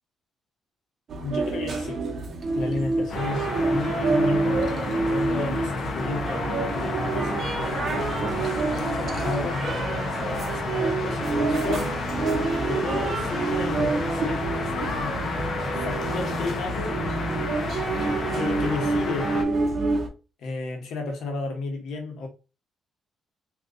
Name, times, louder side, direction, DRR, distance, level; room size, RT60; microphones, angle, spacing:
sound 1, 1.1-20.1, right 3 dB, 55° right, 0.9 m, -27 dB
voice 1, 1.2-2.0 2.5-11.9 12.7-15.2 15.7-17.0 18.3-19.3 20.4-22.3, left 3 dB, 75° left, 1.2 m, -33 dB
sound 2, 3.1-19.4, left 4 dB, 55° left, 0.8 m, -31 dB
3.0 x 2.4 x 3.7 m
cardioid pair, 90°, 0 cm